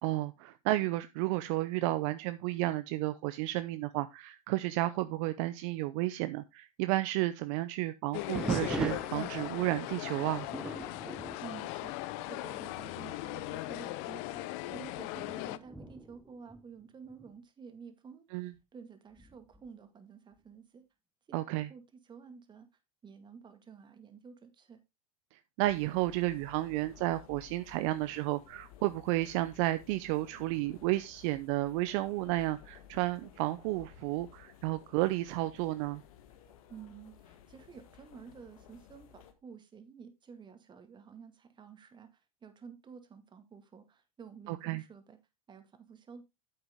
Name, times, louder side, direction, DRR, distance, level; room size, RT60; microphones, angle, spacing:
voice 1, 0.0-10.5 18.3-18.5 21.3-21.7 25.6-36.0 44.5-44.8, right 17 dB, 60° right, 0.6 m, -32 dB
sound 1, 8.1-15.6, left 18 dB, 55° left, 0.7 m, -39 dB
sound 2, 8.3-12.5 12.8-13.2 13.8-13.9 14.6-17.3 19.2-19.7, right 1 dB, 5° right, 1.0 m, -41 dB
voice 2, 11.4-20.8 21.3-22.7 23.0-24.8 36.7-45.2 45.5-46.2, right 6 dB, 25° right, 2.0 m, -51 dB
sound 3, 25.6-39.3, left 10 dB, 70° left, 1.7 m, -56 dB
9.1 x 7.9 x 3.5 m
hypercardioid pair, 105°, 18 cm